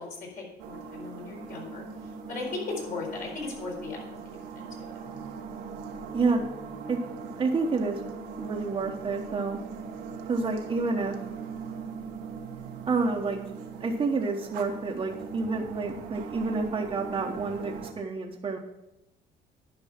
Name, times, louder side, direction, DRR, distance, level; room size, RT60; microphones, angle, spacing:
voice 1, 0.0-1.9 2.3-4.0 4.4-5.0, left 3 dB, 55° left, -2 dB, 4.3 m, -37 dB
sound 1, 0.6-17.9, right 5 dB, 90° right, 1.2 m, -40 dB
voice 2, 6.1-6.5 6.9-7.0 7.4-8.0 8.4-9.6 10.3-11.1 12.9-13.4 13.8-18.6, right 4 dB, 30° right, -2 dB, 1.1 m, -28 dB
11.0 x 5.3 x 5.9 m, 0.88 s
cardioid pair, 110°, 17 cm